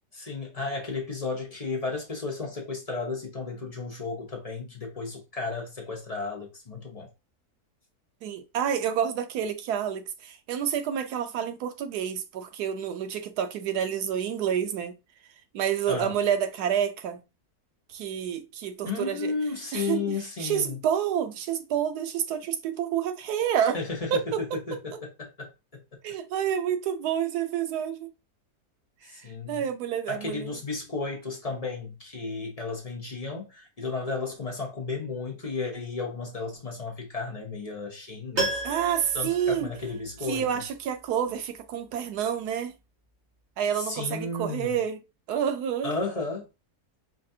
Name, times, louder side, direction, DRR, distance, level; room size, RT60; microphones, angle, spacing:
voice 1, 0.1-7.1 15.9-16.2 18.8-20.8 23.7-25.8 29.0-29.6 30.1-38.6 39.1-40.6 43.7-44.8 45.8-46.5, left 4 dB, 35° left, 0.7 m, -33 dB
voice 2, 8.2-14.9 15.5-17.2 17.9-19.3 19.7-20.0 20.4-23.8 24.1-24.4 26.0-28.1 29.5-30.5 38.6-39.7 40.3-42.7 43.6-45.0 45.3-45.9, right 9 dB, 85° right, 1.2 m, -28 dB
Piano, 38.3-40.4 40.7-40.8, right 2 dB, 55° right, 2.4 m, -33 dB
5.0 x 2.4 x 2.7 m
omnidirectional pair, 1.6 m